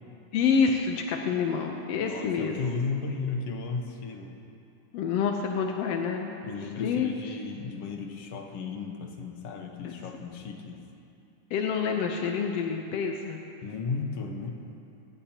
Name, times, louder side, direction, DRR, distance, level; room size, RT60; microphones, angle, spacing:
voice 1, 0.3-2.6 4.9-6.3 6.8-7.1 9.8-9.9 11.5-13.4, left 6 dB, 75° left, 2 dB, 1.5 m, -27 dB
voice 2, 2.0-4.4 6.4-10.8 13.6-14.5, left 4 dB, 60° left, 2 dB, 1.8 m, -34 dB
26.0 x 17.0 x 2.9 m, 2.8 s
omnidirectional pair, 3.8 m